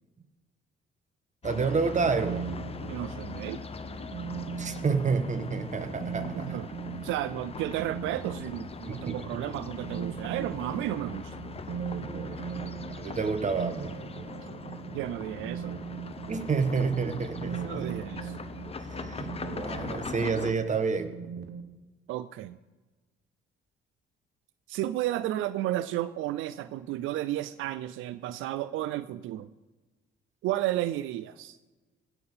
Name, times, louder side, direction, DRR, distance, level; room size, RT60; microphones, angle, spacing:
sound 1, 1.4-20.5, left 4 dB, 30° left, 0.8 m, -41 dB
voice 1, 1.4-2.4 4.6-6.6 8.9-9.5 12.0-12.7 13.0-14.0 16.3-17.9 19.0-21.1, right 5 dB, 35° right, 9 dB, 1.3 m, -29 dB
sound 2, 2.2-21.6, right 8 dB, 60° right, 1.0 m, -40 dB
voice 2, 2.8-3.6 6.3-6.7 7.0-11.3 14.9-15.7 17.6-18.3 22.1-22.6 24.7-29.5 30.4-31.6, right 14 dB, 90° right, 13 dB, 0.4 m, -32 dB
16.5 x 5.9 x 5.6 m, 1.2 s
cardioid pair, 90°, 20 cm